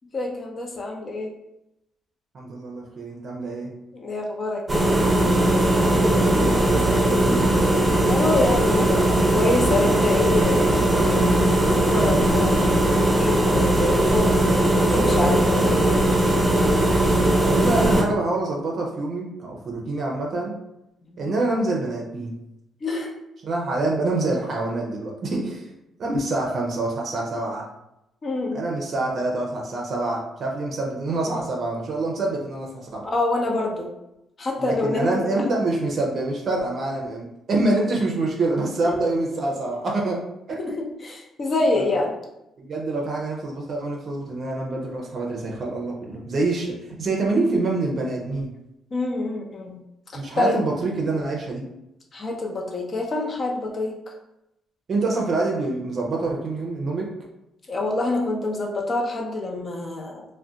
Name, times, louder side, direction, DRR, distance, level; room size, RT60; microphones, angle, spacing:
voice 1, 0.1-1.3 3.9-4.9 8.0-11.3 11.7-14.4 14.9-16.0 16.6-16.7 21.1-21.3 22.8-23.1 28.2-28.7 33.1-33.9 34.4-35.1 35.4-35.5 38.8-38.9 39.7-39.8 40.6-42.1 48.9-49.8 50.1-50.6 52.1-54.1 57.7-60.3, left 2 dB, 40° left, 1 dB, 0.7 m, -26 dB
voice 2, 2.3-3.7 5.8-7.5 17.4-20.5 21.2-22.3 23.4-25.7 26.0-27.7 28.5-33.1 34.6-40.6 41.7-41.8 42.6-48.5 50.1-51.6 54.9-57.1, right 2 dB, 50° right, 0 dB, 0.5 m, -26 dB
sound 1, 4.7-18.0, right 1 dB, 15° right, 0.7 m, -19 dB
2.4 x 2.2 x 3.8 m, 0.88 s
cardioid pair, 90°, 0 cm